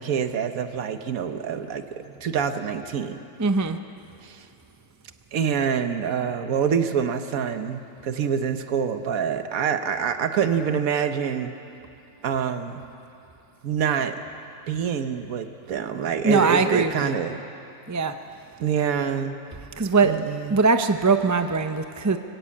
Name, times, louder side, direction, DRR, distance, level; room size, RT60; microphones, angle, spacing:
voice 1, 0.0-3.2 4.2-4.5 5.3-11.6 12.2-12.9 13.6-14.2 14.7-17.4 18.6-19.4 20.0-20.6, right 7 dB, 90° right, 8 dB, 1.4 m, -26 dB
voice 2, 3.4-3.8 16.2-17.1 17.9-18.1 19.8-20.2 20.5-22.2, right 4 dB, 25° right, 8 dB, 0.4 m, -21 dB
25.5 x 16.0 x 8.5 m, 2.7 s
omnidirectional pair, 1.4 m